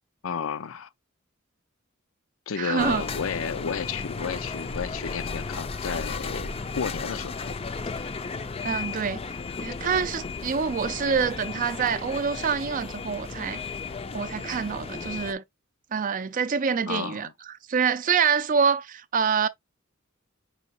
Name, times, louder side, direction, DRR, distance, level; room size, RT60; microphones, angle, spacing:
voice 1, 0.2-0.9 2.5-6.5 6.7-7.6 8.0-8.1 16.9-17.3, left 6 dB, 90° left, 0.5 m, -32 dB
voice 2, 2.6-3.0 8.6-9.2 9.6-13.6 14.1-15.4 15.9-17.3 17.7-19.5, right 6 dB, 40° right, 0.4 m, -26 dB
sound 1, 2.8-15.3, left 4 dB, 30° left, 0.4 m, -34 dB
5.5 x 2.9 x 2.9 m
head